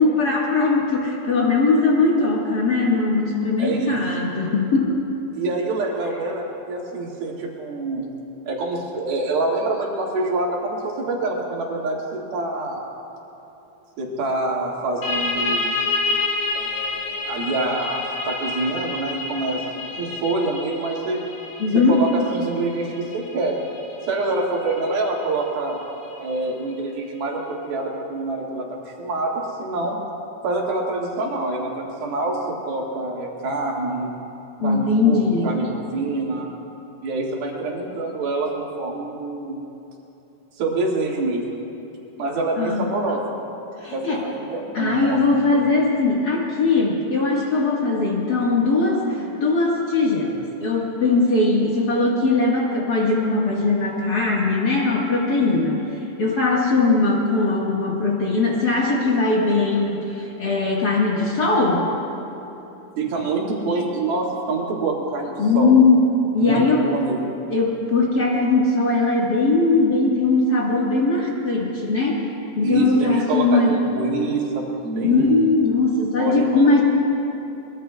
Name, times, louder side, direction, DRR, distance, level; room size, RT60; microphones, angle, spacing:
voice 1, 0.0-4.9 21.6-22.0 34.6-35.5 42.6-42.8 43.8-44.2 44.7-55.8 56.2-61.9 65.4-66.8 67.5-72.2 72.6-73.7 75.0-76.8, left 3 dB, 75° left, -4 dB, 0.8 m, -20 dB
voice 2, 3.6-4.0 5.3-8.1 8.5-12.8 14.0-15.8 16.5-21.2 21.7-23.6 24.1-25.8 26.2-30.0 30.4-34.1 34.6-36.5 37.0-39.6 40.6-41.4 42.2-43.3 43.9-45.6 63.0-65.7 66.4-67.3 72.6-75.6 76.2-76.8, right 2 dB, 80° right, -3 dB, 3.8 m, -26 dB
sound 1, 15.0-26.4, left 3 dB, 55° left, 2.7 m, -29 dB
23.0 x 22.0 x 2.3 m, 2.9 s
omnidirectional pair, 4.3 m